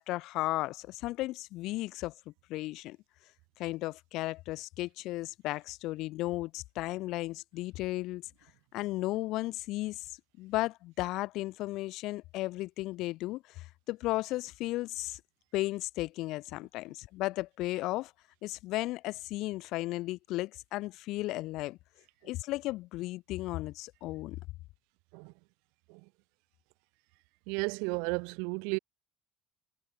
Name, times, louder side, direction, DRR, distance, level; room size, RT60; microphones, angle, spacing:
voice 1, 0.0-2.1 2.5-3.0 3.6-8.3 8.7-10.1 10.4-15.2 15.5-18.1 18.4-21.8 22.2-24.4, left 18 dB, 55° left, 7.7 m, -35 dB
voice 2, 27.5-28.8, right 34 dB, 60° right, 6.6 m, -33 dB
figure-of-eight pair, 60°, 0 cm